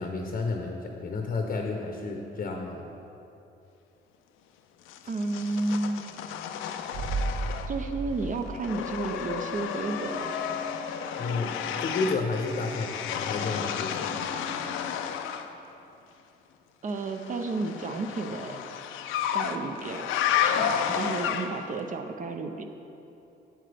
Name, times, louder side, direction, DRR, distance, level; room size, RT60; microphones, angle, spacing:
voice 1, 0.0-2.8 11.2-14.1, left 3 dB, 40° left, 3 dB, 0.7 m, -31 dB
sound 1, 4.9-7.9 8.2-15.5 17.1-21.8, left 8 dB, 85° left, 0.4 m, -32 dB
voice 2, 5.0-6.2 7.7-10.4 16.8-18.6 19.3-20.1 20.4-22.6, right 3 dB, 40° right, 5 dB, 0.5 m, -32 dB
sound 2, 6.9-9.6 9.9-10.0, right 3 dB, 80° right, 0.6 m, -34 dB
Bowed string instrument, 9.6-15.0, equal, 65° right, 1.7 m, -45 dB
7.7 x 7.6 x 3.4 m, 2.9 s
cardioid pair, 90°, 20 cm